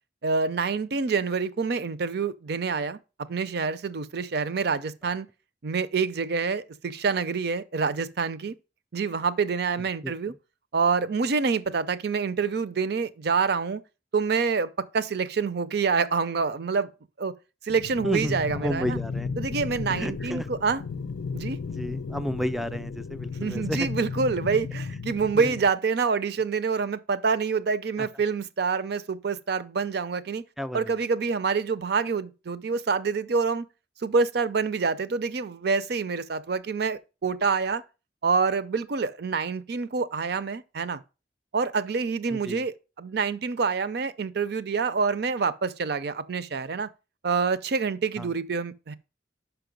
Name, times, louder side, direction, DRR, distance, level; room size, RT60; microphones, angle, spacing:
voice 1, 0.2-3.0 3.3-5.3 5.6-8.6 8.9-10.3 10.7-13.8 14.1-16.9 17.2-17.3 17.6-19.0 19.4-20.8 21.3-21.6 23.4-30.4 30.7-33.7 34.0-37.8 38.2-41.0 41.5-46.9 47.2-49.0, right 5 dB, 60° right, 0.5 m, -27 dB
voice 2, 10.0-10.4 18.0-19.3 19.9-20.7 21.7-23.9 25.3-25.6 28.0-28.1 30.6-30.9 42.3-42.7 48.2-48.3, equal, ahead, 0.3 m, -32 dB
sound 1, 17.7-25.7, left 5 dB, 80° left, 0.4 m, -34 dB
5.8 x 5.3 x 5.2 m
head